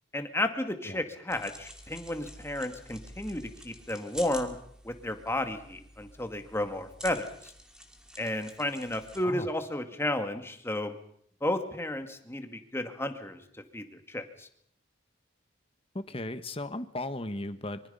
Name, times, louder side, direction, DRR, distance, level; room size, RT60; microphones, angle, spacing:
voice 1, 0.1-4.6 4.8-7.5 8.2-10.9 11.4-13.4 13.7-14.5, left 1 dB, 15° left, 7 dB, 2.0 m, -33 dB
sound 1, 1.3-9.3, equal, 5° right, 2.4 m, -48 dB
voice 2, 15.9-17.8, left 1 dB, 30° left, 11 dB, 1.4 m, -36 dB
25.0 x 24.0 x 5.6 m, 0.67 s
head